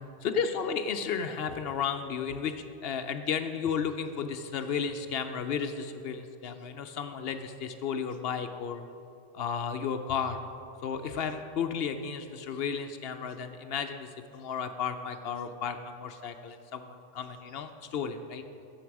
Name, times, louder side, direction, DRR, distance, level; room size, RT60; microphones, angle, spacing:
voice 1, 0.2-8.8 9.3-10.4 10.8-18.4, left 6 dB, 65° left, 8 dB, 0.8 m, -33 dB
14.5 x 6.5 x 4.7 m, 2.7 s
omnidirectional pair, 1.1 m